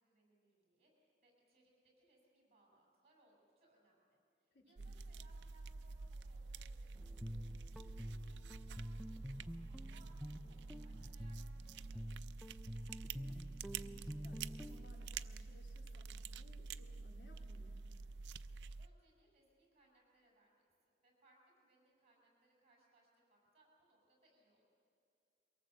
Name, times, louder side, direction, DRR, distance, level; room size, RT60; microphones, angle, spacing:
voice 1, 0.0-7.2 7.5-10.1 10.4-12.3 18.8-24.6, right 2 dB, 35° right, -1 dB, 6.3 m, -72 dB
voice 2, 4.5-4.9 12.9-17.8, left 1 dB, 80° left, 0 dB, 3.1 m, -64 dB
sound 1, 4.8-18.9, right 4 dB, 85° right, 0.5 m, -48 dB
Guitar, 6.9-14.9, equal, ahead, 0.4 m, -49 dB
23.0 x 18.0 x 7.8 m, 2.5 s
head